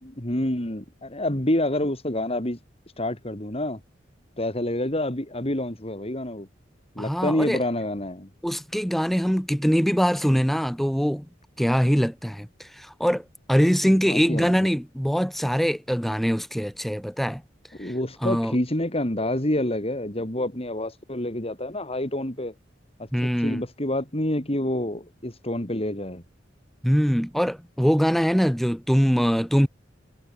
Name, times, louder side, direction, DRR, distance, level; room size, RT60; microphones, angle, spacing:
voice 1, 0.0-2.6 3.0-3.8 4.4-6.5 7.0-8.3 13.8-14.7 17.8-22.5 23.0-26.2, left 1 dB, 30° left, 4.1 m, -28 dB
voice 2, 7.0-7.6 8.4-11.3 11.6-17.4 17.8-17.9 18.2-18.6 23.1-23.6 26.8-29.7, equal, ahead, 3.8 m, -23 dB
head